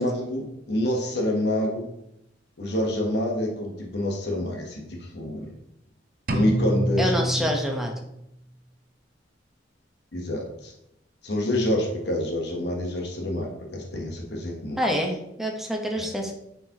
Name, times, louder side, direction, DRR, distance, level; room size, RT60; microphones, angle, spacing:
voice 1, 0.0-1.9 2.6-5.5 6.3-7.5 10.1-10.7 11.2-14.8 16.0-16.1, left 1 dB, 60° left, 0 dB, 1.1 m, -27 dB
sound 1, 6.3-8.2, equal, 50° right, 0.8 m, -27 dB
voice 2, 7.0-7.9 14.8-16.3, equal, ahead, 1 dB, 0.9 m, -26 dB
9.4 x 4.7 x 2.9 m, 0.82 s
head